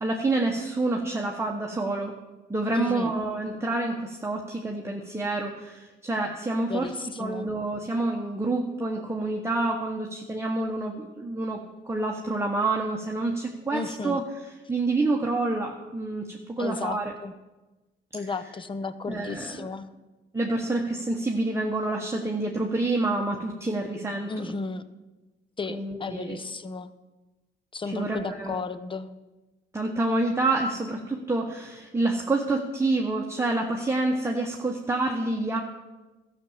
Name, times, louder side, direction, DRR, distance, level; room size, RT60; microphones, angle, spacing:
voice 1, 0.0-2.1 2.5-6.9 7.2-14.2 14.7-17.1 19.1-19.7 20.3-24.5 25.7-26.4 27.9-28.6 29.7-35.6, right 2 dB, 15° right, 0 dB, 1.1 m, -28 dB
voice 2, 2.7-3.1 6.7-7.5 13.7-14.2 16.6-17.3 18.1-19.9 24.3-24.8 25.6-26.9 27.7-29.1 35.5-35.6, left 4 dB, 25° left, 12 dB, 0.7 m, -34 dB
13.0 x 6.1 x 7.2 m, 1.1 s
cardioid pair, 90°, 20 cm